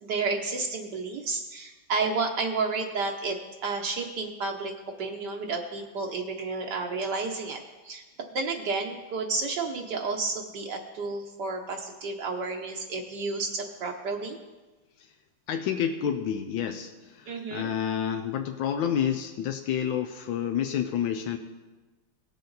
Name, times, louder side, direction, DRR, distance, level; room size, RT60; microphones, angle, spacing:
voice 1, 0.0-4.7 5.0-8.0 8.3-14.4 17.3-17.7, right 4 dB, 65° right, 2 dB, 1.4 m, -31 dB
voice 2, 15.5-21.4, left 8 dB, 85° left, 6 dB, 1.4 m, -29 dB
17.5 x 6.9 x 3.9 m, 1.2 s
omnidirectional pair, 2.0 m